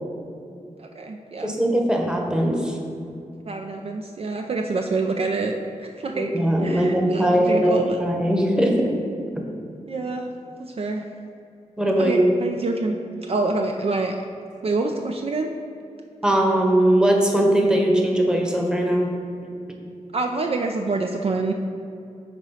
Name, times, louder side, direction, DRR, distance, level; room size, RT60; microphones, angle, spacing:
voice 1, 0.8-1.6 3.5-6.3 6.6-8.0 9.9-10.3 10.6-11.0 12.0-13.0 13.2-14.2 14.6-15.5 20.1-21.5, right 3 dB, 50° right, 3 dB, 0.4 m, -26 dB
voice 2, 1.4-2.7 6.1-8.9 11.8-12.2 16.2-19.1, right 1 dB, 5° right, 0 dB, 0.9 m, -20 dB
8.7 x 3.0 x 5.5 m, 2.5 s
wide cardioid pair, 110°, 13 cm